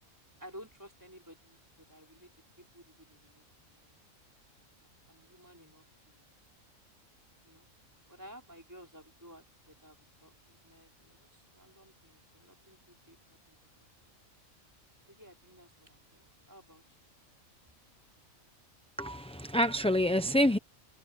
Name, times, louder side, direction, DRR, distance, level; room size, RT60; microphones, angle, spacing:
voice 1, 0.4-2.3 2.6-4.1 5.1-6.4 7.4-7.7 8.1-13.9 15.1-17.1, equal, 15° right, 4.8 m, -55 dB
voice 2, 19.0-20.6, equal, 10° left, 0.4 m, -27 dB
omnidirectional pair, 1.4 m